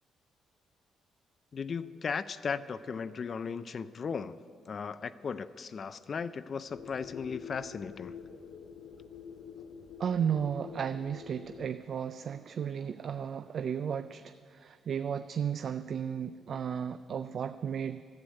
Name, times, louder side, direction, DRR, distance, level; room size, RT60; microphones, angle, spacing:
voice 1, 1.5-4.3 4.7-8.1, left 6 dB, 45° left, 13 dB, 0.4 m, -36 dB
sound 1, 6.7-11.7, left 7 dB, 90° left, 0.7 m, -47 dB
voice 2, 10.0-18.0, right 8 dB, 55° right, 11 dB, 0.3 m, -34 dB
11.5 x 7.7 x 9.0 m, 2.2 s
cardioid pair, 90°, 0 cm